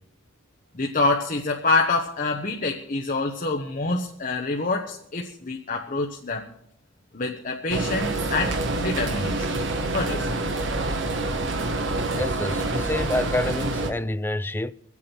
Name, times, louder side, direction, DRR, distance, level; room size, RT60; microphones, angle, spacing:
voice 1, 0.7-6.5 7.1-9.6 9.9-10.4, left 3 dB, 45° left, 1.1 m, -26 dB
sound 1, 7.7-13.9, right 2 dB, 60° right, 1.3 m, -27 dB
voice 2, 12.2-14.7, left 1 dB, 10° left, 0.4 m, -27 dB
25.0 x 8.5 x 4.5 m
head